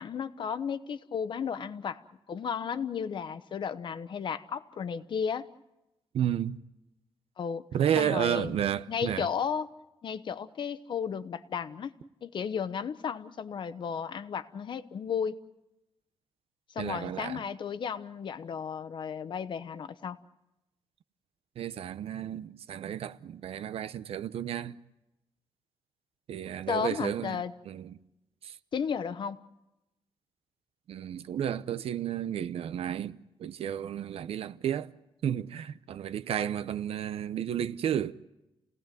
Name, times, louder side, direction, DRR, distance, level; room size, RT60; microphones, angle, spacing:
voice 1, 0.0-2.0 2.3-5.5 7.4-7.6 8.0-8.6 8.9-9.7 10.0-11.9 12.2-15.3 16.7-20.2 26.7-27.5 28.7-29.4, left 7 dB, 50° left, 1.0 m, -34 dB
voice 2, 6.1-6.6 7.7-9.3 16.8-17.4 21.6-24.8 26.3-28.0 28.4-28.6 30.9-34.9 35.2-38.1, right 9 dB, 75° right, 0.9 m, -32 dB
29.5 x 18.0 x 9.2 m
wide cardioid pair, 155°, 10 cm